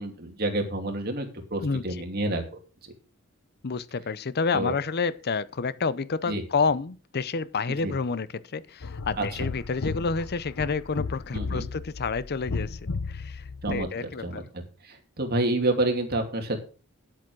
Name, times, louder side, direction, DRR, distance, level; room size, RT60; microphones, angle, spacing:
voice 1, 0.0-2.4 2.8-2.9 4.5-4.7 6.3-6.4 7.8-7.9 9.2-9.5 11.3-11.7 13.6-16.6, right 2 dB, 45° right, 2.7 m, -29 dB
voice 2, 1.6-2.1 3.6-12.8 13.1-14.4, left 4 dB, 50° left, 0.6 m, -29 dB
sound 1, 8.8-13.9, left 4 dB, 80° left, 0.9 m, -34 dB
9.2 x 8.4 x 6.2 m
head